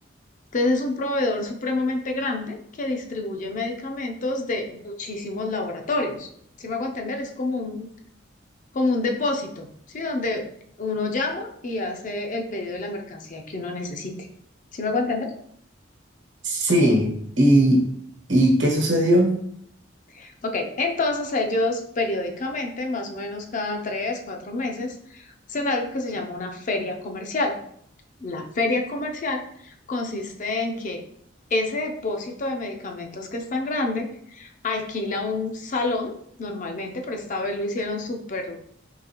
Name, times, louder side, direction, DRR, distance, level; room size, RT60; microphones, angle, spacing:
voice 1, 0.5-6.3 6.6-7.9 8.7-10.5 10.8-14.1 14.7-15.3 20.1-27.6 28.2-31.0 31.5-36.1 36.4-38.6, left 2 dB, 45° left, 3 dB, 0.5 m, -28 dB
voice 2, 16.4-17.8 18.3-19.4, right 1 dB, 75° right, -1 dB, 1.1 m, -18 dB
3.8 x 3.2 x 2.9 m, 0.67 s
head